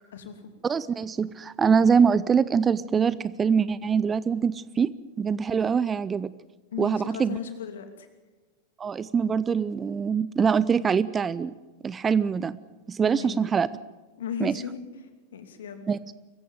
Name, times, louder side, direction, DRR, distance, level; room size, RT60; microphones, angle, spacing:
voice 1, 0.6-4.9 5.2-6.3 6.8-7.4 8.8-11.5 11.8-12.6 12.9-13.7 14.4-14.5 15.9-16.0, right 6 dB, 20° right, 18 dB, 0.6 m, -24 dB
voice 2, 6.7-8.1 13.1-13.4 14.2-14.8 15.3-15.9, left 7 dB, 60° left, 7 dB, 2.7 m, -36 dB
23.5 x 15.0 x 9.3 m, 1.2 s
figure-of-eight pair, 90°, 0 cm